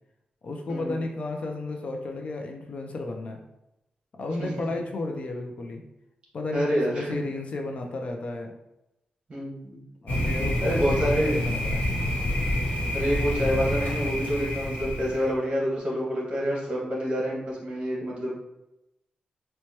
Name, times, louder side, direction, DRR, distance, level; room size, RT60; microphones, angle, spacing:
voice 1, 0.4-3.4 4.2-5.8 6.3-8.5 10.0-11.9, left 2 dB, 45° left, 2 dB, 0.4 m, -33 dB
voice 2, 6.5-7.1 9.3-9.8 10.6-11.4 12.9-18.3, equal, 35° right, -5 dB, 1.3 m, -27 dB
Thunder, 10.1-15.3, left 1 dB, 75° left, 1.1 m, -27 dB
4.4 x 2.1 x 2.8 m, 0.91 s
wide cardioid pair, 165°, 3 cm